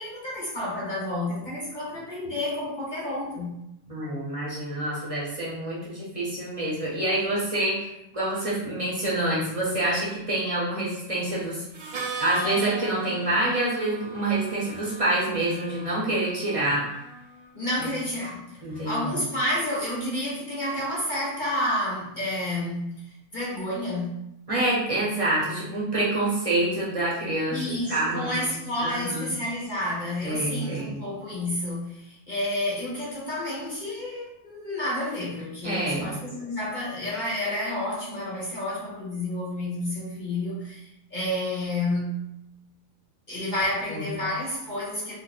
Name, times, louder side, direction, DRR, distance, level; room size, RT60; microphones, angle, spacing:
voice 1, 0.0-3.6 17.5-23.0 23.3-24.2 27.5-42.2 43.3-45.2, left 1 dB, 45° left, -6 dB, 0.7 m, -30 dB
voice 2, 3.9-11.6 12.2-16.9 17.8-17.9 18.6-19.2 24.5-28.5 28.8-29.3 30.2-31.0 35.6-36.1 43.9-44.2, right 1 dB, 30° right, -6 dB, 0.7 m, -27 dB
Harmonica, 11.7-17.5, right 2 dB, 60° right, 0.4 m, -37 dB
2.5 x 2.3 x 3.9 m, 0.84 s
omnidirectional pair, 1.5 m